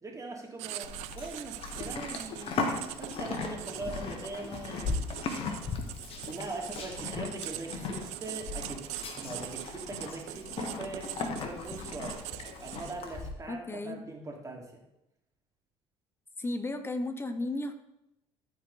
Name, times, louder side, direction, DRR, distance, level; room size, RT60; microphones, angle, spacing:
voice 1, 0.0-5.2 6.3-11.1 11.4-12.3 12.6-14.8, right 2 dB, 25° right, 1 dB, 2.6 m, -41 dB
Writing, 0.6-13.2, right 16 dB, 75° right, 0.5 m, -43 dB
Livestock farm animals working animals, 0.8-13.3, left 4 dB, 55° left, 1.5 m, -37 dB
voice 2, 13.5-14.0 16.4-17.7, left 2 dB, 20° left, 9 dB, 1.2 m, -34 dB
14.0 x 4.7 x 4.0 m, 0.87 s
hypercardioid pair, 70°, 12 cm